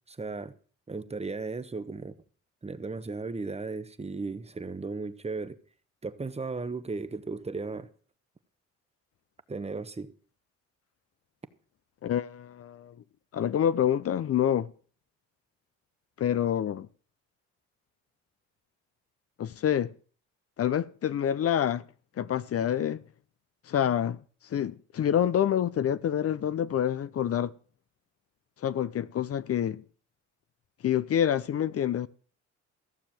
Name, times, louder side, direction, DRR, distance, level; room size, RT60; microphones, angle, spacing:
voice 1, 0.1-0.5 0.9-2.1 2.6-5.6 6.0-7.9 9.5-10.1, right 3 dB, 20° right, 1.1 m, -35 dB
voice 2, 12.0-12.9 13.3-14.7 16.2-16.9 19.4-19.9 20.6-21.8 22.2-23.0 23.7-24.2 24.5-27.5 28.6-29.8 30.8-32.1, left 9 dB, 50° left, 0.7 m, -27 dB
15.0 x 6.9 x 7.5 m
cardioid pair, 90°, 30 cm